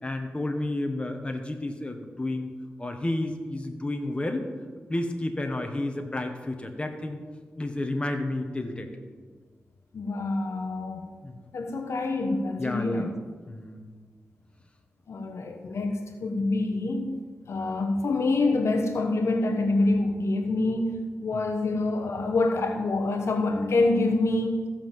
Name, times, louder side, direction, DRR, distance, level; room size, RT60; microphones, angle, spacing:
voice 1, 0.0-2.5 2.8-4.4 4.9-7.2 7.6-8.9 11.2-11.3 12.6-13.1 13.5-13.8 21.3-21.5, left 2 dB, 20° left, 1.5 m, -31 dB
voice 2, 9.9-11.1 11.5-13.1 15.1-17.2 17.5-24.6, left 2 dB, 70° left, 1.2 m, -26 dB
15.0 x 5.9 x 7.4 m
cardioid pair, 75°, 5 cm